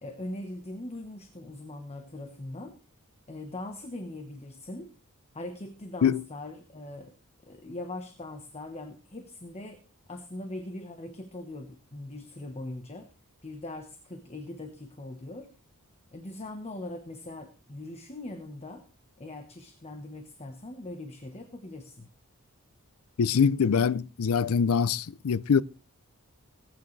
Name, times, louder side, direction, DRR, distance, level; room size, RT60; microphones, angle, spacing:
voice 1, 0.0-2.8 3.3-4.9 5.3-7.1 7.4-9.8 10.1-13.1 13.4-15.5 16.1-18.8 19.2-22.1, left 1 dB, 30° left, 1.2 m, -41 dB
voice 2, 23.2-25.6, left 6 dB, 70° left, 0.5 m, -24 dB
19.0 x 9.3 x 3.2 m
head